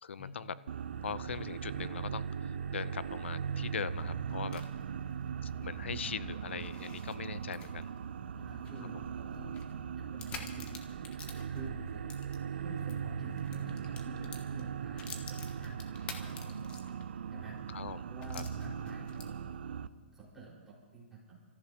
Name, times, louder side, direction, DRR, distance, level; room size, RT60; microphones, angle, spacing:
voice 1, 0.0-0.5 1.0-2.2 2.7-4.6 5.4-7.9 17.7-18.0 18.3-18.4, left 7 dB, 80° left, 16 dB, 0.6 m, -40 dB
sound 1, 0.7-19.9, right 7 dB, 70° right, 0.5 m, -39 dB
sound 2, 3.8-13.0 13.3-17.2 17.6-17.7 18.2-19.5, left 5 dB, 20° left, 1.3 m, -50 dB
voice 2, 5.9-6.5 8.3-10.8 11.5-12.0 12.5-16.7 17.3-17.8 18.1-21.4, right 2 dB, 5° right, -6 dB, 5.0 m, -49 dB
28.0 x 14.5 x 2.9 m, 1.5 s
hypercardioid pair, 155°, 6 cm